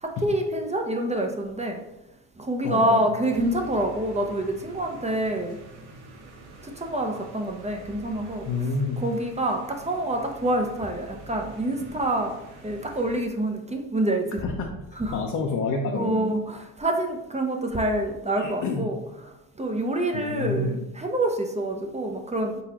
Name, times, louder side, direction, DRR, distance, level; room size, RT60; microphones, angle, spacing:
voice 1, 0.0-1.8 2.4-5.6 6.6-8.5 9.0-12.4 12.6-14.3 15.0-15.2 15.9-19.0 19.6-22.6, right 1 dB, 15° right, 3 dB, 0.6 m, -27 dB
voice 2, 2.6-3.1 8.4-9.0 14.4-14.8 15.1-16.3 18.4-18.9 20.1-20.8, left 3 dB, 45° left, 1 dB, 0.7 m, -28 dB
sound 1, 3.3-13.2, right 2 dB, 65° right, 0.9 m, -46 dB
4.0 x 3.6 x 2.8 m, 0.89 s
supercardioid pair, 70°, 41 cm